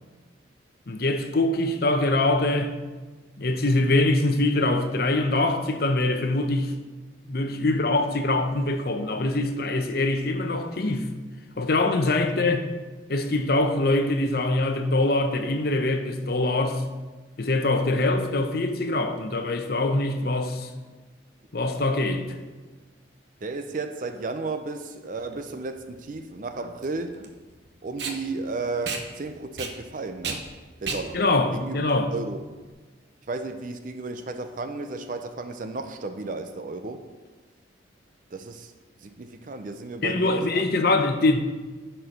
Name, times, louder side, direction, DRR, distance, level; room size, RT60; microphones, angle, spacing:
voice 1, 0.9-2.7 3.4-6.7 7.3-11.1 11.6-12.6 13.1-16.8 17.4-20.7 21.5-22.2 31.1-32.1 40.0-41.4, left 2 dB, 50° left, 6 dB, 0.7 m, -23 dB
voice 2, 23.4-27.3 27.8-30.4 30.8-31.2 31.5-31.8 32.1-32.4 33.3-37.0 38.3-38.7 39.0-40.6, right 3 dB, 45° right, 7 dB, 0.5 m, -33 dB
Packing tape duct tape, 25.2-32.7, right 4 dB, 60° right, 1.0 m, -36 dB
11.0 x 4.4 x 5.2 m, 1.3 s
head